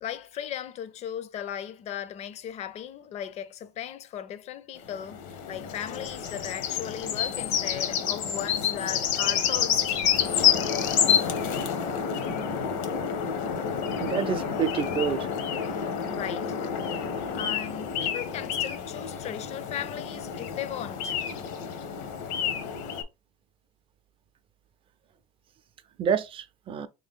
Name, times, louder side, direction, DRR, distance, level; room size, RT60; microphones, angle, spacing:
voice 1, 0.0-10.0 16.1-16.6 17.3-21.2, left 10 dB, 40° left, 0.5 m, -37 dB
sound 1, 4.8-23.0, left 7 dB, 70° left, 0.8 m, -28 dB
voice 2, 14.0-15.3 26.0-26.9, right 7 dB, 30° right, 0.4 m, -28 dB
3.4 x 2.7 x 3.5 m
supercardioid pair, 115°, 17 cm